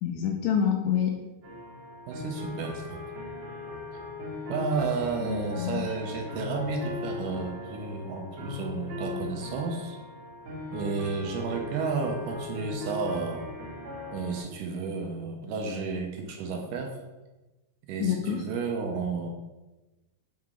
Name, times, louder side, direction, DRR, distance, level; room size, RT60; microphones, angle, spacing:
voice 1, 0.0-1.2 5.2-5.8 18.0-18.4, left 8 dB, 85° left, 2 dB, 1.7 m, -27 dB
sound 1, 1.4-14.4, left 3 dB, 55° right, 3.1 m, -39 dB
voice 2, 2.1-3.0 4.5-10.0 10.7-13.5 14.1-16.9 17.9-19.3, right 4 dB, 75° right, 2 dB, 2.2 m, -32 dB
7.8 x 4.6 x 3.7 m, 1.1 s
omnidirectional pair, 4.1 m